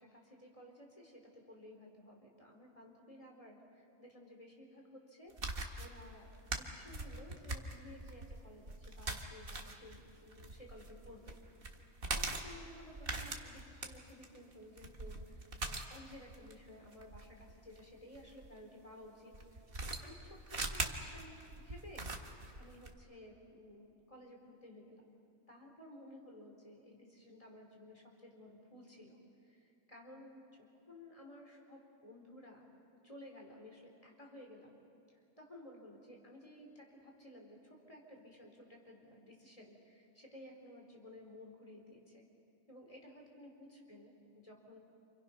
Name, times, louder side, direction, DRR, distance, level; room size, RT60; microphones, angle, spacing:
voice 1, 0.0-11.4 12.1-20.2 20.5-22.1 22.5-25.1 25.5-34.8 35.1-42.3 42.7-44.8, left 1 dB, 25° left, 0 dB, 4.1 m, -55 dB
sound 1, 5.3-18.5 19.3-22.9, right 2 dB, 40° right, 1.8 m, -42 dB
29.0 x 27.5 x 5.9 m, 2.5 s
omnidirectional pair, 1.5 m